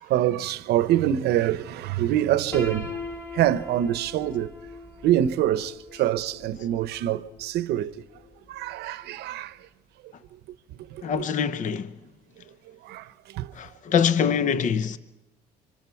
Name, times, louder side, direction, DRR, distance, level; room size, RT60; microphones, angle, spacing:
voice 1, 0.0-3.0 3.3-4.5 5.0-8.0 8.5-9.6 10.9-11.3 12.8-13.5, right 12 dB, 80° right, 0.8 m, -25 dB
Piano, 2.5-8.4, left 3 dB, 15° left, 3.8 m, -40 dB
voice 2, 11.0-12.0 13.5-15.0, left 7 dB, 50° left, 0.8 m, -24 dB
26.0 x 25.0 x 4.6 m
cardioid pair, 110°, 17 cm